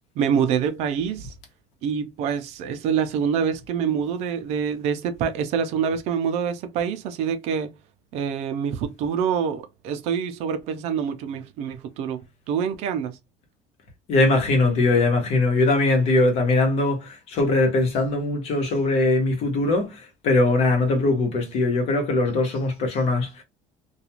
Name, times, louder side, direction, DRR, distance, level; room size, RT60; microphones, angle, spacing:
voice 1, 0.2-1.3 1.8-7.7 8.1-12.2 12.5-13.2, right 7 dB, 55° right, 0.4 m, -26 dB
voice 2, 14.1-23.4, left 2 dB, 50° left, 1.0 m, -21 dB
2.4 x 2.3 x 2.8 m
cardioid pair, 175°, 13 cm